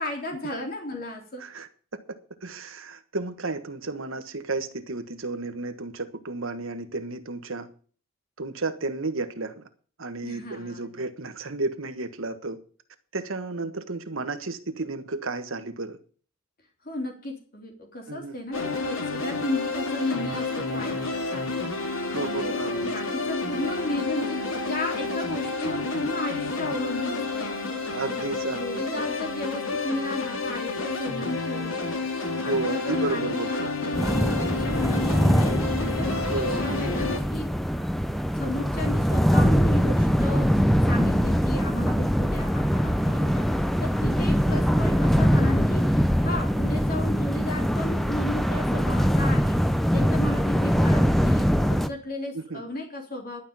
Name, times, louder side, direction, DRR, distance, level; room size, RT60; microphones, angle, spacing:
voice 1, 0.0-1.4 10.2-11.0 13.6-13.8 16.8-28.0 28.6-35.5 36.0-37.5 38.3-49.6 49.9-53.4, left 1 dB, 45° left, 3.4 m, -34 dB
voice 2, 2.4-7.7 8.4-9.6 10.0-12.6 13.1-16.0 18.1-18.3 22.1-22.9 27.9-28.8 32.4-33.5 36.3-36.6 52.3-52.6, right 3 dB, 80° right, 1.4 m, -32 dB
sound 1, 18.5-37.2, left 3 dB, 80° left, 2.4 m, -30 dB
sound 2, 33.9-51.9, equal, ahead, 0.6 m, -23 dB
12.0 x 5.8 x 9.0 m
head